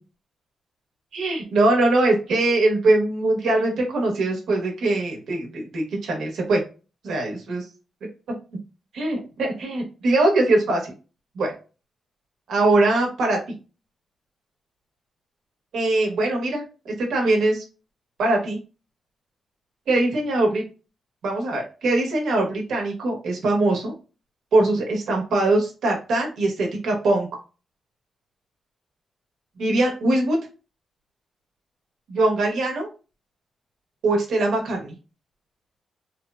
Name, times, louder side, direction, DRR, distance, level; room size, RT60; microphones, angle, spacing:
voice 1, 1.1-6.6 7.0-7.6 8.9-10.9 11.4-11.5 12.5-13.4 15.7-17.6 18.2-18.6 19.9-20.6 21.2-23.9 24.5-27.3 29.6-30.4 32.1-32.9 34.0-34.9, right 2 dB, 85° right, 1 dB, 0.8 m, -22 dB
2.9 x 2.0 x 2.2 m, 0.33 s
cardioid pair, 110°, 0 cm